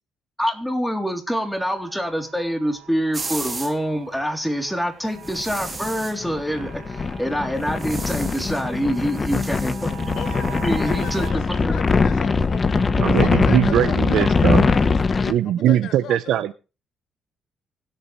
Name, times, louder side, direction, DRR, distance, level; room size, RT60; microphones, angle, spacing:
voice 1, 0.4-10.1 10.6-11.8, equal, ahead, 3.4 m, -26 dB
sound 1, 1.4-11.3, right 11 dB, 60° right, 2.7 m, -43 dB
sound 2, 3.1-3.8 5.2-6.2 7.6-8.7 8.9-11.3, right 3 dB, 25° right, 1.9 m, -36 dB
sound 3, 5.3-15.3, left 4 dB, 35° left, 1.2 m, -22 dB
voice 2, 10.2-16.4, left 8 dB, 75° left, 2.2 m, -37 dB
voice 3, 13.0-14.7 15.3-16.5, right 11 dB, 80° right, 0.8 m, -20 dB
25.0 x 8.5 x 3.3 m
cardioid pair, 90°, 0 cm